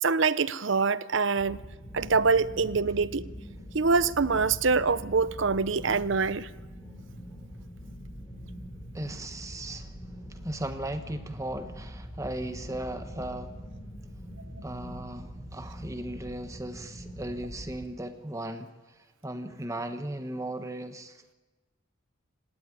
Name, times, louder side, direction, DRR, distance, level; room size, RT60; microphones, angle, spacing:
voice 1, 0.0-1.6 1.9-3.3 3.7-6.5, right 4 dB, 60° right, 0.7 m, -25 dB
sound 1, 1.3-17.9, equal, 20° left, 3.9 m, -43 dB
voice 2, 8.9-9.9 10.3-13.5 14.6-18.7 19.2-21.3, right 1 dB, 15° right, 1.2 m, -37 dB
26.0 x 17.5 x 9.9 m
head